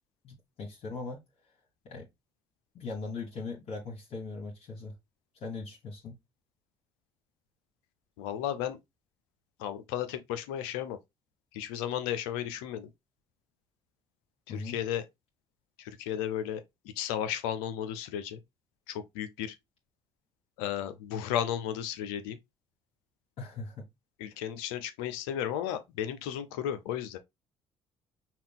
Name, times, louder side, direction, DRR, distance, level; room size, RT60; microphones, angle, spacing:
voice 1, 0.2-1.2 1.8-2.1 2.7-4.9 5.3-6.2 14.5-14.8 23.4-23.9, left 3 dB, 60° left, 1.5 m, -39 dB
voice 2, 8.2-8.8 9.6-11.0 11.5-12.9 14.5-15.0 15.8-18.4 18.9-19.6 20.6-22.4 24.2-27.2, left 10 dB, 75° left, 0.6 m, -34 dB
5.6 x 2.4 x 3.5 m
hypercardioid pair, 55°, 12 cm